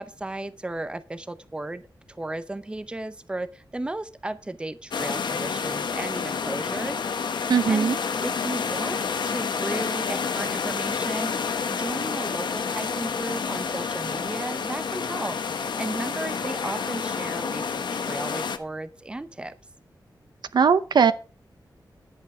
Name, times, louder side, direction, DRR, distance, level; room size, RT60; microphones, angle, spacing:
voice 1, 0.0-1.8 2.1-7.0 7.7-7.9 8.2-15.4 15.8-19.5, right 2 dB, 15° right, 0.7 m, -34 dB
sound 1, 4.9-18.6, left 5 dB, 80° left, 1.1 m, -29 dB
voice 2, 7.5-8.0 20.5-21.1, right 6 dB, 70° right, 0.7 m, -19 dB
11.0 x 8.6 x 4.9 m
wide cardioid pair, 165°, 8 cm